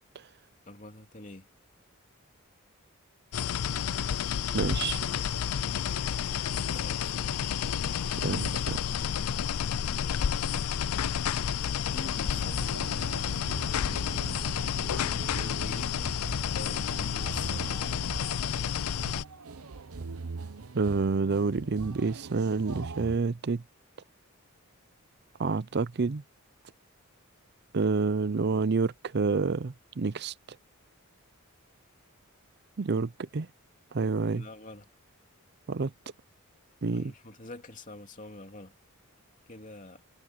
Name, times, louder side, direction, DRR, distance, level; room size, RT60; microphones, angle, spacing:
voice 1, 0.6-1.5 6.7-7.4 8.9-9.8 11.9-12.8 13.8-14.7 15.1-16.0 16.5-18.3 34.3-34.9 36.9-38.7 39.5-40.0, left 2 dB, 35° left, 2.9 m, -46 dB
sound 1, 3.3-19.2, left 8 dB, 85° left, 0.5 m, -30 dB
voice 2, 4.5-5.0 8.0-8.8 20.7-23.6 25.4-26.2 27.7-30.3 32.8-33.5 33.9-34.4 35.7-35.9 36.8-37.1, right 4 dB, 50° right, 0.5 m, -28 dB
sound 2, 4.8-20.2, equal, 5° right, 3.0 m, -62 dB
sound 3, 12.3-23.2, right 4 dB, 80° right, 0.9 m, -42 dB
head